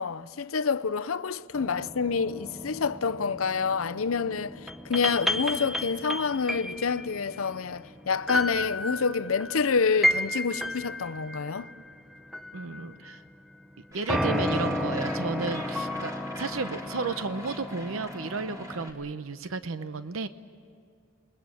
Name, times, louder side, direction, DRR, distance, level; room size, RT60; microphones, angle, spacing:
voice 1, 0.0-11.7, left 5 dB, 90° left, 0.7 m, -28 dB
sound 1, 1.5-13.2 14.1-18.9, left 1 dB, ahead, 0.7 m, -33 dB
voice 2, 12.5-13.2 13.9-16.1 16.4-20.3, right 4 dB, 85° right, 0.8 m, -33 dB
Gull seagull, 13.9-18.9, equal, 15° right, 3.2 m, -44 dB
27.5 x 22.0 x 7.7 m
head